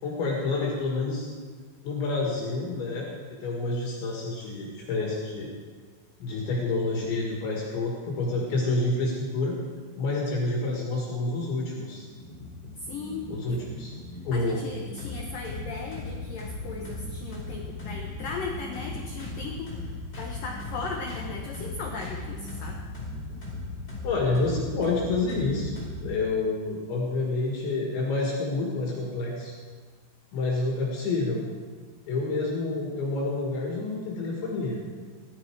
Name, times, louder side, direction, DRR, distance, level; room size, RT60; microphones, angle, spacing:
voice 1, 0.0-1.3 1.8-3.1 3.4-5.5 6.2-9.6 10.0-12.0 13.3-13.9 14.3-14.6 24.0-29.5 30.3-31.4 32.1-34.8, left 3 dB, 65° left, -3 dB, 4.2 m, -28 dB
sound 1, 12.1-26.1, left 2 dB, 20° left, 5.3 m, -38 dB
voice 2, 12.8-13.6 14.3-22.8, left 4 dB, 85° left, 0 dB, 1.9 m, -37 dB
17.5 x 12.5 x 4.8 m, 1.5 s
omnidirectional pair, 5.8 m